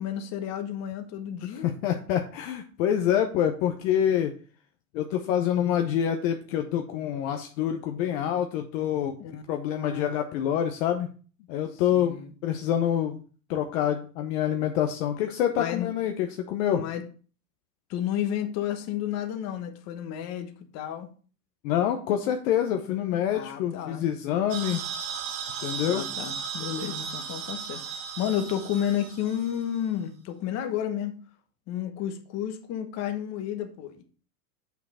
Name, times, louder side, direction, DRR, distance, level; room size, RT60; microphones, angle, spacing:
voice 1, 0.0-1.7 9.2-10.1 11.7-12.3 15.6-15.9 16.7-17.0 17.9-21.1 23.3-24.1 25.9-31.2 31.7-34.0, left 10 dB, 30° left, 7 dB, 1.2 m, -32 dB
voice 2, 1.4-4.3 4.9-9.2 9.5-11.1 11.5-12.1 12.4-13.2 13.5-16.8 21.6-24.8 25.6-26.0, left 10 dB, 50° left, 5 dB, 0.9 m, -26 dB
sound 1, 24.5-29.8, right 7 dB, 50° right, 1.2 m, -36 dB
7.2 x 5.8 x 4.2 m, 0.39 s
supercardioid pair, 145°, 49 cm